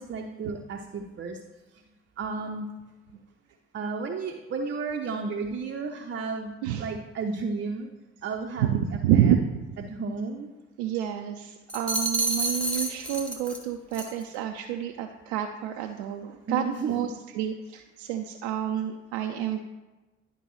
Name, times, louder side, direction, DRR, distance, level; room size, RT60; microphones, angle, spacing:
voice 1, 0.0-1.4 2.2-2.7 3.7-7.9 8.2-9.3 9.8-10.5 16.5-17.1, right 4 dB, 35° right, 2 dB, 0.7 m, -33 dB
voice 2, 8.6-9.4 10.8-19.6, right 10 dB, 70° right, 4 dB, 0.5 m, -28 dB
sound 1, 11.7-13.6 13.9-14.2, right 2 dB, 5° left, 1.4 m, -29 dB
11.0 x 5.2 x 3.1 m, 1.1 s
figure-of-eight pair, 40°, 32 cm